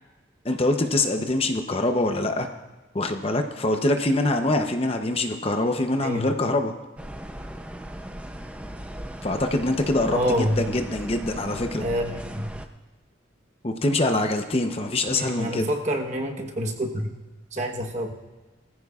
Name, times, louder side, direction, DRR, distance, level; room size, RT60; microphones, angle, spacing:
voice 1, 0.4-2.5 2.9-6.7 9.2-11.8 13.6-15.7, left 2 dB, 30° left, 6 dB, 0.7 m, -24 dB
voice 2, 6.0-6.4 10.1-10.6 11.8-12.5 15.1-17.1 17.5-18.1, equal, 35° right, 2 dB, 1.1 m, -27 dB
sound 1, 7.0-12.7, right 1 dB, 5° right, 0.6 m, -37 dB
21.0 x 14.5 x 2.4 m, 1.2 s
head